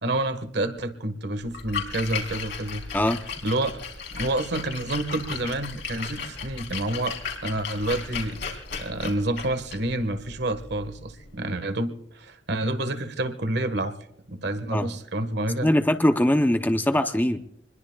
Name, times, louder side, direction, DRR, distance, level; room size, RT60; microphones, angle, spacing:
voice 1, 0.0-2.8 3.4-3.8 4.1-8.4 8.8-14.0 14.3-15.7, right 1 dB, 65° right, 10 dB, 1.5 m, -28 dB
Splash splatter, 1.4-11.3, left 5 dB, 70° left, 3.5 m, -36 dB
voice 2, 15.6-17.4, left 1 dB, 10° left, 8 dB, 0.7 m, -21 dB
26.5 x 21.5 x 2.3 m, 0.75 s
head